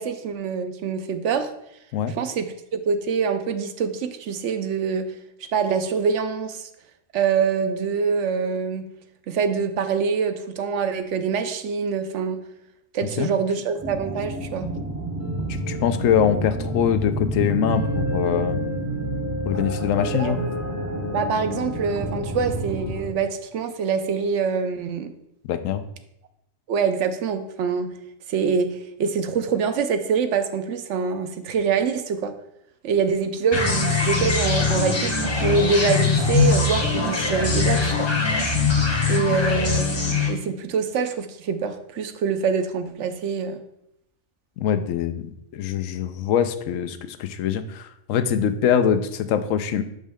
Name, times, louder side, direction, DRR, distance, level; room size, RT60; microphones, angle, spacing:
voice 1, 0.0-1.5 2.1-2.5 2.7-5.1 5.5-6.7 7.1-8.9 9.3-12.4 12.9-14.7 20.2-20.3 21.1-25.1 26.7-27.9 28.3-32.3 32.8-38.1 39.1-43.6, right 5 dB, 70° right, 8 dB, 0.9 m, -25 dB
sound 1, 13.8-23.1, right 1 dB, 20° right, 0.5 m, -28 dB
voice 2, 15.5-18.6 19.5-20.4 25.5-25.8 44.6-49.8, left 8 dB, 80° left, 10 dB, 1.0 m, -23 dB
sound 2, 33.5-40.3, left 4 dB, 25° left, 0.8 m, -22 dB
6.4 x 5.2 x 3.4 m, 0.79 s
omnidirectional pair, 1.3 m